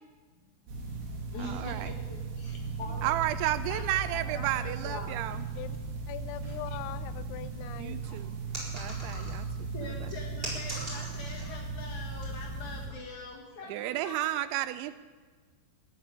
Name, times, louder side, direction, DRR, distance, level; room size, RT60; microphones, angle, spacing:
voice 1, 0.3-3.2 3.7-5.3 8.0-8.3 9.7-14.2, left 3 dB, 50° left, 0 dB, 2.6 m, -44 dB
sound 1, 0.7-12.9, right 4 dB, 55° right, 4.2 m, -37 dB
voice 2, 1.4-1.9 3.0-5.4 7.8-8.4 8.7-9.7 13.7-14.9, right 14 dB, 85° right, 13 dB, 2.8 m, -32 dB
voice 3, 6.1-8.0, left 12 dB, 85° left, 12 dB, 3.0 m, -41 dB
sound 2, 8.5-9.6 10.1-11.6 11.9-12.3 12.9-13.1, equal, 10° right, 3.9 m, -40 dB
14.0 x 8.3 x 9.7 m, 1.5 s
omnidirectional pair, 5.5 m